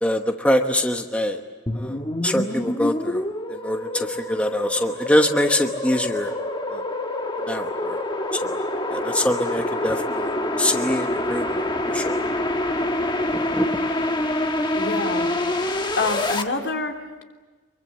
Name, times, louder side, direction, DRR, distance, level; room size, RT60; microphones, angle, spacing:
voice 1, 0.0-1.4 1.7-2.0 2.2-3.2 3.5-6.3 6.7-6.8 7.5-8.0 8.3-8.6 8.9-10.3 10.6-11.5 11.9-12.2 13.3-13.8, left 1 dB, 5° left, 4 dB, 1.1 m, -24 dB
sound 1, 1.7-16.4, left 1 dB, 25° left, 1.5 m, -26 dB
voice 2, 14.7-15.3 16.0-17.2, left 2 dB, 70° left, 3 dB, 3.3 m, -26 dB
25.5 x 23.5 x 8.7 m, 1.3 s
head